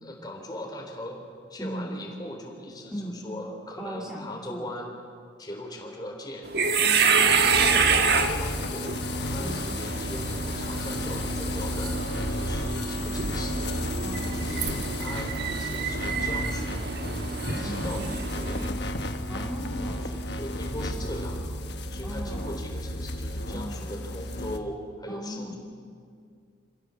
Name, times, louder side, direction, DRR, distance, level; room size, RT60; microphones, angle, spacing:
voice 1, 0.0-1.2 1.5-4.9 5.4-6.5 7.6-12.0 12.3-13.7 14.2-16.9 17.4-18.6 20.0-21.6 21.9-25.5, left 1 dB, 20° left, 1 dB, 3.7 m, -39 dB
voice 2, 1.6-1.9 2.9-3.2 3.8-4.7 6.8-7.7 9.4-9.8 14.0-14.6 17.7-17.9 19.3-20.1 22.0-22.6 23.5-23.9 25.1-25.5, equal, 5° right, -3 dB, 2.5 m, -38 dB
sound 1, 6.5-18.7, right 5 dB, 60° right, 1.4 m, -28 dB
sound 2, 7.2-24.6, left 1 dB, 65° left, 1.3 m, -32 dB
28.0 x 15.5 x 7.2 m, 2.2 s
head